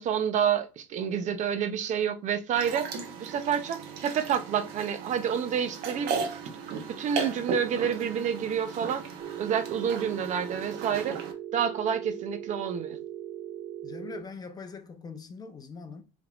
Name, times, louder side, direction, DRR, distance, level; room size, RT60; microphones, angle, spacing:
voice 1, 0.0-2.9 3.2-6.2 6.7-9.0 9.4-11.2 11.5-13.0, right 8 dB, 45° right, 0.6 m, -29 dB
sound 1, 2.5-11.3, right 5 dB, 65° right, 1.1 m, -36 dB
Telephone, 9.2-14.2, right 10 dB, 25° right, 1.0 m, -39 dB
voice 2, 13.8-16.0, left 4 dB, 20° left, 0.7 m, -42 dB
4.8 x 3.5 x 2.4 m
supercardioid pair, 120°, 17 cm